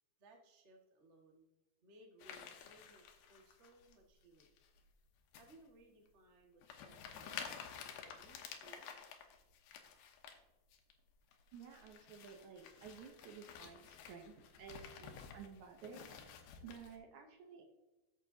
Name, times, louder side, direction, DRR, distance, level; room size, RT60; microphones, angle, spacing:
voice 1, 0.2-1.5 1.8-4.5 5.3-8.9, right 2 dB, 55° right, 0 dB, 0.7 m, -64 dB
sound 1, 2.2-4.0 4.4-4.8 5.3-5.6 6.1-6.2 6.6-10.4 10.7-10.9 11.3-17.0, left 7 dB, 85° left, 3.0 m, -52 dB
voice 2, 11.5-16.1 16.6-17.7, right 6 dB, 70° right, 3 dB, 1.9 m, -54 dB
13.5 x 8.0 x 2.7 m, 1.1 s
omnidirectional pair, 4.3 m